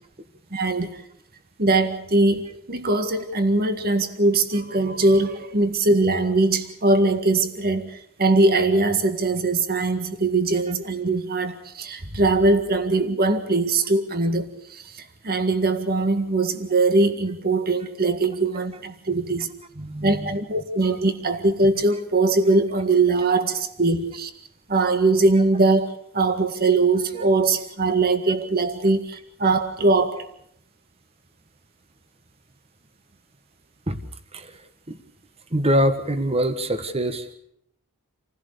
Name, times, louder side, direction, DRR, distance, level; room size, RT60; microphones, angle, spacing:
voice 1, 0.5-1.0 1.6-19.5 20.0-24.3 24.7-25.9 26.1-30.2, right 2 dB, 45° right, 9 dB, 1.8 m, -21 dB
voice 2, 19.7-20.3 33.9-34.0 34.3-34.6 34.9-35.0 35.5-37.3, equal, 30° right, 10 dB, 1.5 m, -24 dB
28.0 x 16.0 x 6.9 m, 0.72 s
head